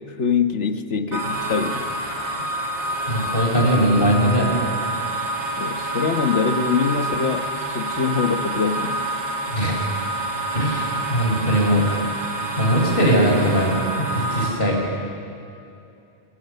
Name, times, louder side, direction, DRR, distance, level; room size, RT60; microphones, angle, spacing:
voice 1, 0.1-1.9 5.6-9.1, left 5 dB, 80° left, 8 dB, 1.6 m, -23 dB
sound 1, 1.1-14.5, right 2 dB, 75° right, 3.6 m, -27 dB
voice 2, 3.1-4.6 9.5-9.8 10.5-11.9 12.6-14.8, equal, 50° left, -1 dB, 5.5 m, -20 dB
26.5 x 24.5 x 6.8 m, 2.6 s
omnidirectional pair, 1.2 m